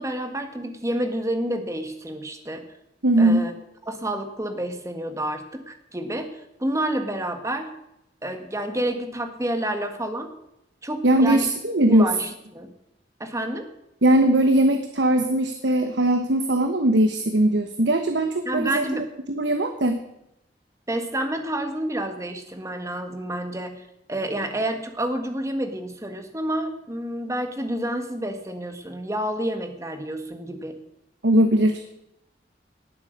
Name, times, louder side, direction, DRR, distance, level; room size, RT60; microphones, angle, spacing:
voice 1, 0.0-2.6 3.2-3.5 3.9-7.7 8.2-10.3 10.8-11.5 11.9-12.7 13.2-13.6 18.4-19.0 20.9-30.7, right 1 dB, 15° right, 7 dB, 1.6 m, -29 dB
voice 2, 3.0-3.4 11.0-12.1 14.0-20.0 31.2-31.9, right 1 dB, 75° right, 7 dB, 1.2 m, -20 dB
18.5 x 8.2 x 6.6 m, 0.85 s
head